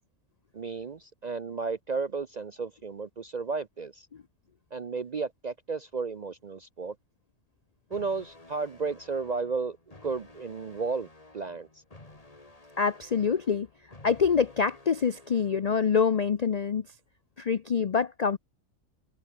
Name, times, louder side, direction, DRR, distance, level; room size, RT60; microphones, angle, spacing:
voice 1, 0.5-4.1 4.7-7.0 7.9-9.8 10.0-11.1 11.3-11.7, right 4 dB, 50° right, 0.5 m, -33 dB
sound 1, 7.9-15.9, left 2 dB, 25° left, 2.7 m, -53 dB
voice 2, 12.8-13.7 14.0-16.9 17.4-18.4, left 6 dB, 60° left, 0.4 m, -25 dB
omnidirectional pair, 1.5 m